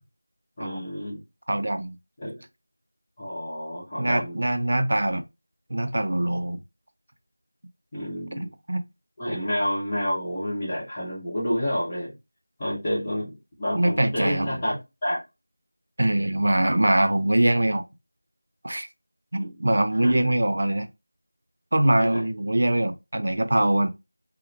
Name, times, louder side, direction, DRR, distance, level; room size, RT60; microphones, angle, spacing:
voice 1, 0.6-1.2 2.2-2.4 3.2-4.4 7.9-8.5 9.2-12.1 12.6-15.2 16.1-16.4 19.4-19.7 20.0-20.3 22.0-22.2, equal, 20° left, 0.9 m, -29 dB
voice 2, 1.5-2.0 4.0-5.2 5.7-6.6 8.7-8.8 9.3-9.4 13.7-14.5 16.0-17.9 18.6-18.9 19.3-20.9 21.7-23.9, right 1 dB, 55° right, 0.4 m, -23 dB
2.7 x 2.0 x 2.6 m
figure-of-eight pair, 175°, 0 cm